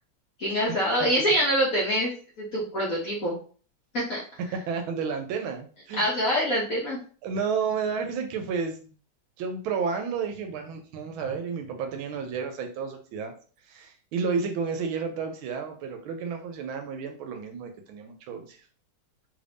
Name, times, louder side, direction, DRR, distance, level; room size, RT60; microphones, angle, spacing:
voice 1, 0.4-2.1 2.4-3.4 3.9-4.2 6.0-7.0, equal, 60° left, -5 dB, 0.9 m, -25 dB
voice 2, 4.5-6.0 7.2-8.9 9.4-13.3 13.7-18.6, right 5 dB, 75° right, 5 dB, 1.3 m, -31 dB
3.5 x 2.6 x 3.3 m, 0.41 s
omnidirectional pair, 2.3 m